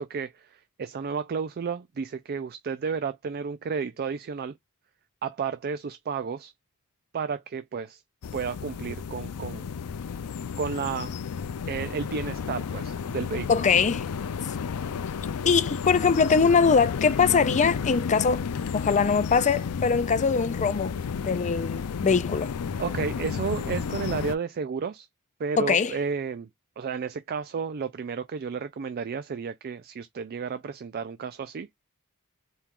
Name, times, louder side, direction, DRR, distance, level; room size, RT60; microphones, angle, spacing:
voice 1, 0.0-4.5 5.2-6.5 7.1-8.0 8.3-9.7 10.6-11.1 11.7-13.7 22.8-25.1 25.4-26.5 26.8-31.7, right 5 dB, 45° right, 0.4 m, -32 dB
sound 1, 8.2-24.4, left 6 dB, 90° left, 0.5 m, -32 dB
voice 2, 13.5-14.0 15.5-18.4 18.7-22.5 25.6-25.9, left 5 dB, 35° left, 0.5 m, -22 dB
4.4 x 2.4 x 3.5 m
head